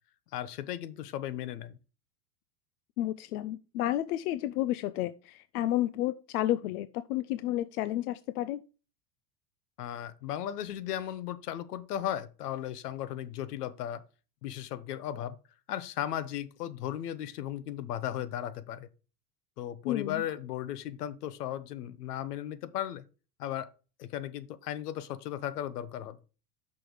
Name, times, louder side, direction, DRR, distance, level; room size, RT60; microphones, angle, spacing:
voice 1, 0.3-1.8 9.8-14.0 14.4-15.3 15.7-18.9 19.6-23.0 23.4-23.7 24.0-26.2, left 11 dB, 90° left, 1.0 m, -36 dB
voice 2, 3.0-8.6 19.8-20.3, left 14 dB, 75° left, 0.5 m, -31 dB
6.1 x 5.1 x 4.6 m
supercardioid pair, 175°, 46 cm